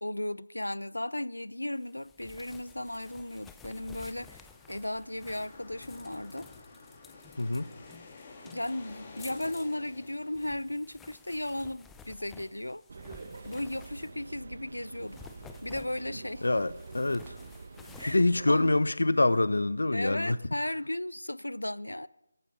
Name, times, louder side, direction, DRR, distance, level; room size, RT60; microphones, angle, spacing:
voice 1, 0.0-6.5 8.4-12.8 13.5-15.2 15.6-16.5 18.0-18.6 19.9-22.1, left 1 dB, 90° left, 0.5 m, -35 dB
sound 1, 1.8-14.4 14.9-19.2, left 5 dB, 5° left, 0.8 m, -54 dB
sound 2, 2.7-10.7, left 3 dB, 30° left, 4.0 m, -51 dB
voice 2, 7.4-7.7 16.4-17.4 18.0-20.4, left 2 dB, 70° left, 0.9 m, -26 dB
sound 3, 12.9-18.8, right 3 dB, 50° right, 1.5 m, -45 dB
22.5 x 14.5 x 4.2 m
figure-of-eight pair, 160°, 0 cm